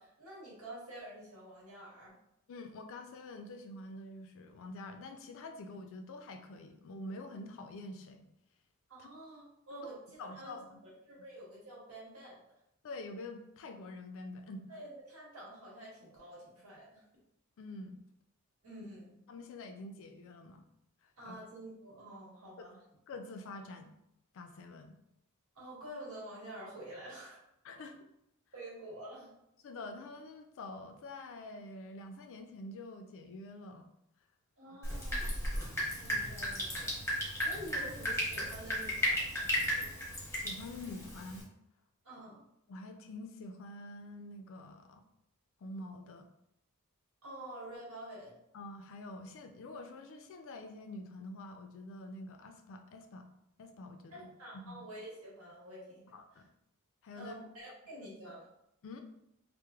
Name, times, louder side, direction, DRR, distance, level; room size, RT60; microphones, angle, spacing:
voice 1, 0.0-2.1 8.9-10.6 10.8-12.4 14.7-17.0 18.6-19.2 21.2-22.8 25.5-27.4 28.5-29.3 34.6-35.4 35.9-37.0 37.4-39.5 42.0-42.4 47.2-48.3 54.1-56.4 57.1-58.5, right 1 dB, 80° right, -5 dB, 1.1 m, -48 dB
voice 2, 2.5-8.3 9.0-9.1 9.7-9.9 10.2-10.8 12.8-14.7 17.6-18.0 19.3-20.6 21.3-21.4 23.1-23.9 24.3-25.0 27.6-28.0 29.6-33.9 40.4-41.4 42.7-45.0 45.6-46.3 48.5-53.3 53.6-54.3 54.5-54.8 56.1-56.5 57.0-57.4 58.0-58.1 58.8-59.0, left 2 dB, 65° left, 6 dB, 0.3 m, -46 dB
Drip, 34.8-41.4, left 1 dB, 10° left, 0.7 m, -35 dB
3.0 x 2.1 x 2.3 m, 0.79 s
head